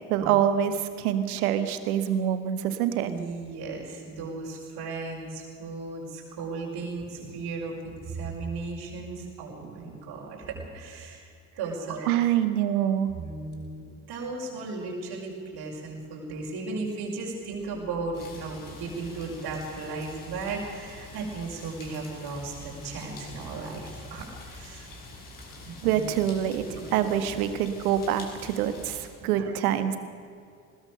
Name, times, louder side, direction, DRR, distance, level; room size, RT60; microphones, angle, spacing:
voice 1, 0.1-3.1 9.9-10.0 12.1-13.1 23.5-23.6 25.8-26.6 26.9-30.0, right 10 dB, 70° right, 10 dB, 1.7 m, -25 dB
voice 2, 3.0-11.2 11.5-12.2 13.2-13.8 14.1-24.9 25.9-26.0 26.6-27.2 29.2-29.5, right 3 dB, 55° right, -1 dB, 5.7 m, -36 dB
sound 1, 18.1-29.1, left 2 dB, 45° left, 5.7 m, -45 dB
21.0 x 20.5 x 6.7 m, 2.4 s
figure-of-eight pair, 55°, 46 cm